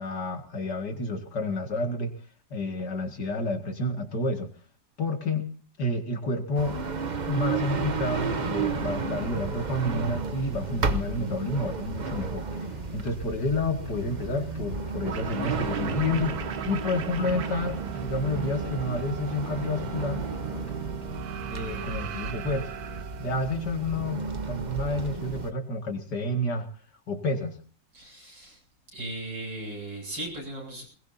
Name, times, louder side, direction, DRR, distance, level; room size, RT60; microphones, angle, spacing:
voice 1, 0.0-2.1 2.5-4.5 5.0-5.5 5.8-6.8 7.3-12.5 12.9-20.2 21.5-22.8 23.2-26.7 27.1-27.6, left 2 dB, 65° left, 5 dB, 2.6 m, -30 dB
sound 1, 6.5-25.5, right 4 dB, 35° right, 0.8 m, -33 dB
sound 2, 8.9-22.4, left 1 dB, 20° left, 1.7 m, -47 dB
sound 3, 15.0-24.0, right 7 dB, 60° right, 1.4 m, -37 dB
voice 2, 27.9-28.6 28.9-30.8, right 1 dB, 80° right, 1 dB, 8.7 m, -37 dB
21.0 x 20.5 x 2.7 m, 0.42 s
omnidirectional pair, 2.0 m